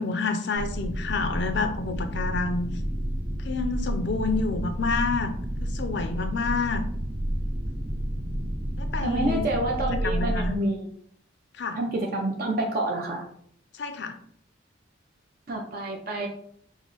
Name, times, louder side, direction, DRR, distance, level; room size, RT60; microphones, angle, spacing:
voice 1, 0.0-2.7 3.4-5.4 5.6-6.8 8.8-9.5 10.0-10.6 11.6-11.8 13.7-14.2, left 4 dB, 60° left, 8 dB, 0.5 m, -28 dB
sound 1, 0.5-10.6, equal, 70° right, 1.4 m, -30 dB
voice 2, 9.0-10.9 11.7-13.3 15.5-16.3, right 1 dB, 50° right, 0 dB, 0.6 m, -28 dB
6.0 x 2.0 x 3.9 m, 0.65 s
head